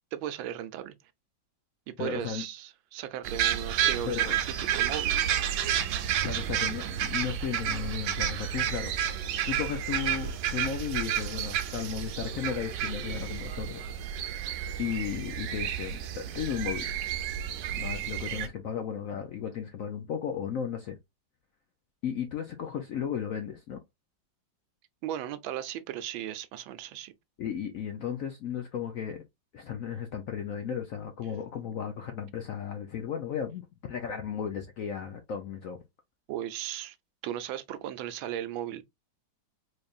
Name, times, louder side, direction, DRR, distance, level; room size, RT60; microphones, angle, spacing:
voice 1, 0.1-1.0 1.9-5.3 6.3-6.7 25.0-27.1 36.3-37.0 37.2-38.8, right 11 dB, 90° right, 1.4 m, -37 dB
voice 2, 2.0-2.4 4.0-4.4 6.2-8.9 9.4-13.8 14.8-16.9 17.7-21.0 22.0-23.8 27.4-29.2 29.5-35.8, left 8 dB, 70° left, 0.8 m, -35 dB
sound 1, 3.2-18.5, right 10 dB, 75° right, 1.2 m, -31 dB
4.2 x 3.3 x 2.4 m
omnidirectional pair, 2.1 m